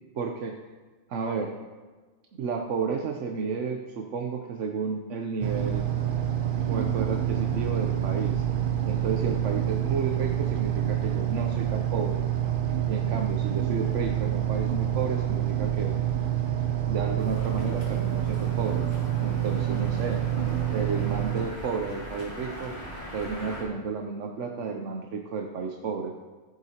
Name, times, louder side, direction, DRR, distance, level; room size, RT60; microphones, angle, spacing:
voice 1, 0.1-0.6 1.1-1.6 2.3-5.9 6.7-8.4 8.8-12.2 12.9-15.9 16.9-18.8 19.2-20.2 20.7-22.7 23.1-26.1, right 5 dB, 70° right, 2 dB, 1.1 m, -32 dB
sound 1, 5.4-21.5, right 11 dB, 50° right, 0.8 m, -27 dB
sound 2, 17.2-23.6, equal, 35° left, 3.1 m, -40 dB
15.0 x 8.0 x 2.9 m, 1.4 s
omnidirectional pair, 1.3 m